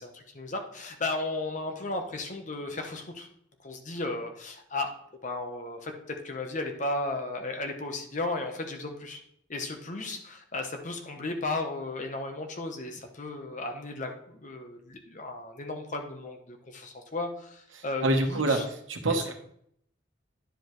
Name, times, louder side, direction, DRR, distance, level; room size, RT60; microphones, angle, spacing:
voice 1, 0.0-3.3 3.6-4.9 5.2-5.9 6.2-9.2 9.5-18.7 19.1-19.3, left 2 dB, 40° left, 4 dB, 0.9 m, -35 dB
voice 2, 17.8-19.3, right 2 dB, 80° right, 4 dB, 1.1 m, -27 dB
10.0 x 5.1 x 3.1 m, 0.68 s
head